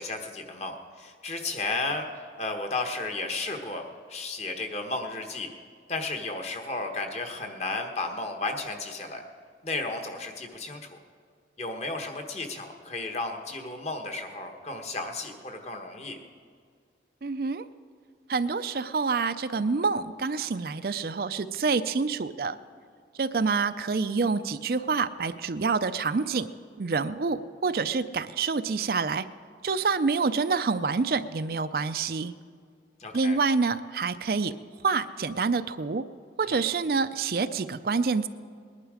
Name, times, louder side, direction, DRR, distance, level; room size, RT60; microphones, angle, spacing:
voice 1, 0.0-2.1 2.4-5.5 5.9-9.2 9.6-10.8 11.6-16.2 33.0-33.4 36.5-36.6, left 3 dB, 35° left, 5 dB, 1.2 m, -33 dB
voice 2, 17.2-17.7 18.3-22.6 23.2-26.5 26.8-29.3 29.6-32.3 33.1-34.5 34.8-36.1 36.4-38.3, right 4 dB, 55° right, 11 dB, 0.5 m, -27 dB
20.0 x 11.0 x 5.0 m, 2.1 s
head